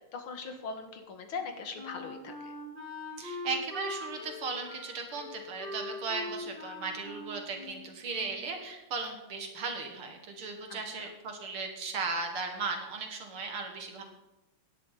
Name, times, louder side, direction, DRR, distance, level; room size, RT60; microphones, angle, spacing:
voice 1, 0.0-2.5 6.4-6.5 10.7-11.1, left 4 dB, 75° left, 5 dB, 2.3 m, -41 dB
Wind instrument woodwind instrument, 1.3-8.6, left 1 dB, 20° right, 3.4 m, -42 dB
voice 2, 3.2-14.0, right 4 dB, 85° right, 3 dB, 2.7 m, -36 dB
17.5 x 10.5 x 4.1 m, 0.99 s
omnidirectional pair, 2.3 m